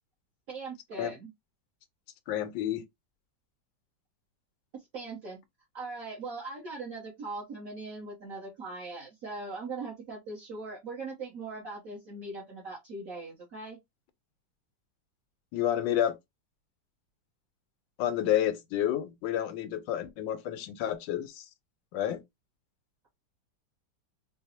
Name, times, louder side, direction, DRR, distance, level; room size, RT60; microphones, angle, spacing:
voice 1, 0.5-1.3 4.7-5.4 5.7-13.8, right 3 dB, 55° right, 1.2 m, -40 dB
voice 2, 2.3-2.8 15.5-16.2 18.0-21.5 21.9-22.2, left 11 dB, 85° left, 1.4 m, -30 dB
4.7 x 2.0 x 2.7 m
omnidirectional pair, 2.0 m